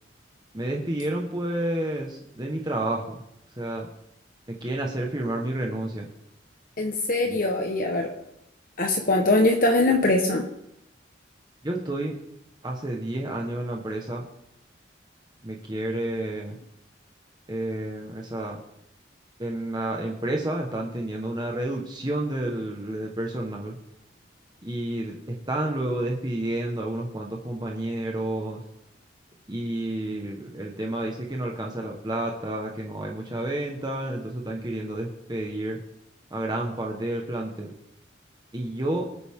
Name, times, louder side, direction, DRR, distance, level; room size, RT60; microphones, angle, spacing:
voice 1, 0.5-3.2 3.6-3.9 4.5-6.1 7.2-7.4 11.6-12.1 12.6-14.2 15.4-16.6 17.5-18.6 19.4-23.8 24.6-28.6 29.5-35.8 36.3-37.7 38.5-39.1, right 1 dB, 20° right, 0 dB, 1.3 m, -30 dB
voice 2, 6.8-8.1 8.8-10.4, left 2 dB, 45° left, 2 dB, 1.2 m, -22 dB
24.5 x 9.3 x 3.7 m, 0.81 s
head